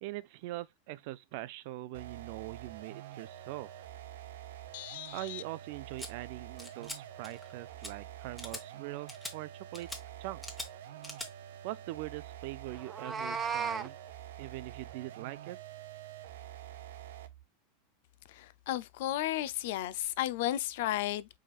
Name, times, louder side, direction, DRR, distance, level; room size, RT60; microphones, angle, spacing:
voice 1, 0.0-3.7 5.1-9.9 10.2-10.5 11.6-13.9 14.4-15.6, right 17 dB, 55° right, 0.5 m, -42 dB
sound 1, 1.9-17.4, right 12 dB, 85° right, 0.8 m, -47 dB
voice 2, 4.7-5.4 18.3-21.3, left 14 dB, 65° left, 0.5 m, -34 dB
sound 2, 6.0-6.1 6.6-7.0 7.2-7.5 7.8-7.9 8.4-8.6 9.1-9.3 9.7-10.0 10.4-10.7 11.0-11.3, left 1 dB, 5° left, 1.1 m, -42 dB
Meow, 12.8-13.9, right 6 dB, 15° right, 0.7 m, -34 dB
4.9 x 4.4 x 2.4 m
supercardioid pair, 150°, 0 cm